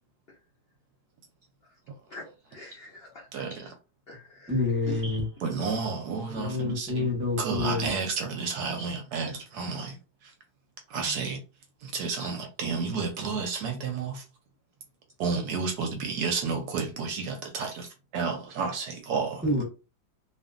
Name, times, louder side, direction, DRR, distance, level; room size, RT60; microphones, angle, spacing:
voice 1, 2.1-3.6 4.1-4.5 4.9-5.2 8.8-8.9 11.0-11.1 12.2-12.3, equal, 70° left, 0.5 m, -43 dB
voice 2, 3.3-3.7 5.4-7.1 7.4-10.0 10.2-10.3 10.9-11.4 11.8-14.2 15.2-17.9 18.1-19.6, right 5 dB, 70° right, 1.0 m, -31 dB
voice 3, 4.5-5.3 6.3-7.9 19.4-19.6, left 3 dB, 10° right, 0.7 m, -27 dB
2.7 x 2.5 x 2.4 m
omnidirectional pair, 2.0 m